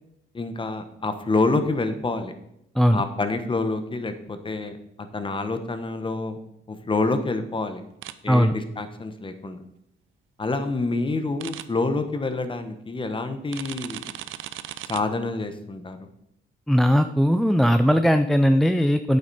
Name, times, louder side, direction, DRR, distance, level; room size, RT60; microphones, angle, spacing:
voice 1, 0.3-2.3 2.9-6.4 6.7-7.8 8.2-9.6 10.4-14.1 14.9-16.0, left 3 dB, 25° left, 9 dB, 1.2 m, -27 dB
sound 1, 8.0-8.1 11.4-11.6 13.5-15.0, right 13 dB, 80° right, 0.5 m, -36 dB
voice 2, 16.7-19.2, equal, ahead, 8 dB, 0.4 m, -19 dB
8.9 x 7.9 x 4.2 m, 0.78 s
cardioid pair, 90°, 20 cm